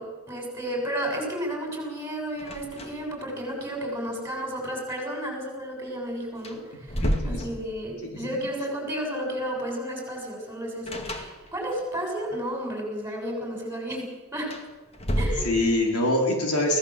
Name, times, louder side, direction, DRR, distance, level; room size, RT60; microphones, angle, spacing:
voice 1, 0.0-14.5 15.2-15.5, equal, 10° right, 1 dB, 6.9 m, -32 dB
sound 1, 2.4-3.2 3.5-3.6 5.8-5.9 6.4-8.1 10.9-11.8 14.3-16.0, equal, 25° left, 2.2 m, -31 dB
voice 2, 7.0-7.4 8.1-8.3 15.2-16.8, left 1 dB, 85° left, 1 dB, 4.9 m, -25 dB
24.0 x 17.0 x 7.8 m, 1.3 s
head